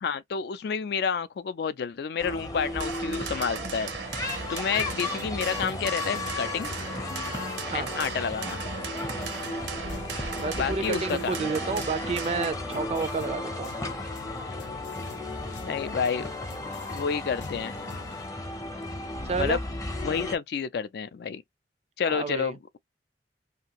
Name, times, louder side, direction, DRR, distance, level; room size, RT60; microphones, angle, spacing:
voice 1, 0.0-3.9 4.5-6.7 7.7-8.6 10.5-11.5 15.6-16.3 16.9-17.8 19.4-19.6 20.0-21.4 22.0-22.8, left 6 dB, 65° left, 0.4 m, -29 dB
sound 1, 2.2-20.4, left 2 dB, 20° left, 0.6 m, -35 dB
sound 2, 2.6-12.5, right 5 dB, 85° right, 0.8 m, -37 dB
sound 3, 4.1-18.3, left 4 dB, 90° left, 0.8 m, -46 dB
voice 2, 10.4-13.7 19.2-19.6 22.1-22.5, right 4 dB, 35° right, 0.4 m, -30 dB
2.8 x 2.5 x 2.8 m
head